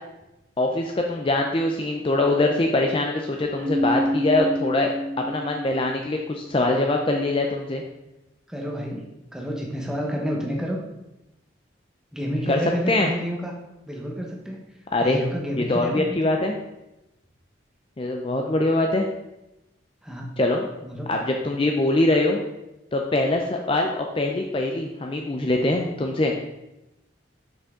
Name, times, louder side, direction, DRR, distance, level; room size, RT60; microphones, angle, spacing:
voice 1, 0.6-7.8 12.5-12.6 12.9-13.1 14.9-15.2 15.5-16.5 18.0-19.1 20.4-20.7 21.1-22.4 22.9-26.4, left 2 dB, 30° left, 2 dB, 0.4 m, -23 dB
Keyboard (musical), 3.6-6.3, equal, 80° right, 0.8 m, -27 dB
voice 2, 8.5-9.0 9.3-10.8 12.1-13.5 13.9-14.6 15.0-16.2 20.0-20.4 20.8-21.1, equal, 5° right, -1 dB, 0.9 m, -29 dB
6.1 x 5.4 x 3.6 m, 0.93 s
head